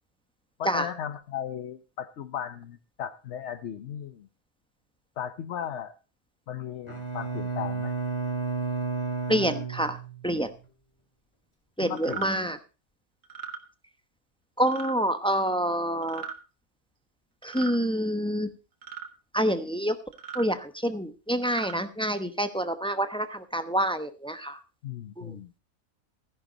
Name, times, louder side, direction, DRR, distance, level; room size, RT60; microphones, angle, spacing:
voice 1, 0.6-4.3 5.2-5.9 6.5-7.9 11.8-12.5 24.8-25.5, left 9 dB, 60° left, 11 dB, 1.0 m, -36 dB
Bowed string instrument, 6.9-10.4, right 4 dB, 20° left, 2.3 m, -32 dB
voice 2, 9.3-10.0 10.2-10.5 11.8-12.6 14.6-16.2 17.4-18.5 19.3-19.9 20.3-24.6 25.2-25.4, equal, 5° left, 9 dB, 0.7 m, -27 dB
sound 1, 12.0-12.3 13.2-13.6 14.7-15.0 16.0-16.4 17.4-17.8 18.8-19.1 20.1-20.5 21.3-21.8, right 7 dB, 65° right, 1.7 m, -38 dB
13.5 x 10.5 x 4.0 m, 0.33 s
omnidirectional pair, 1.5 m